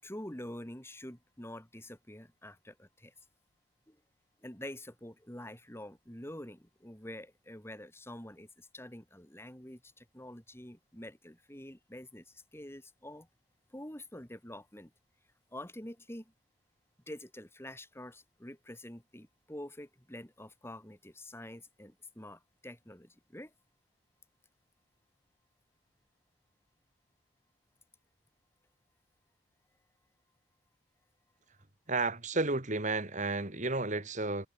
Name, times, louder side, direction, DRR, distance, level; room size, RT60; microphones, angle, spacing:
voice 1, 0.0-3.1 3.9-4.0 4.4-13.3 13.7-14.9 15.5-16.3 17.1-23.5, left 1 dB, 15° left, 4.9 m, -47 dB
voice 2, 31.9-34.5, right 3 dB, 40° right, 3.0 m, -32 dB
head